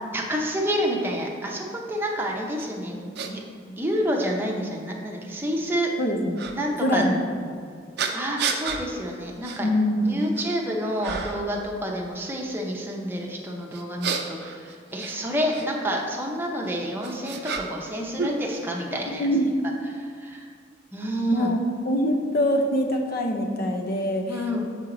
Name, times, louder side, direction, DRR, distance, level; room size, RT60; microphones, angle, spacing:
voice 1, 0.1-2.9 3.3-3.4 3.8-5.9 6.5-7.0 8.1-9.7 10.0-19.3 19.6-20.4 20.9-21.5 24.3-24.6, equal, 10° right, -1 dB, 0.7 m, -29 dB
sound 1, 2.6-2.7 3.2-3.3 4.2-4.3 6.4-6.5 8.0-8.8 9.4-9.6 10.1-10.6 11.0-11.5 13.7-15.7 16.6-17.9 18.2-19.0, right 5 dB, 65° right, 0.5 m, -31 dB
voice 2, 6.0-6.4 6.8-7.5 9.6-10.2 19.1-19.5 21.3-24.6, equal, 55° left, 3 dB, 0.7 m, -24 dB
6.9 x 4.5 x 3.8 m, 2.1 s
head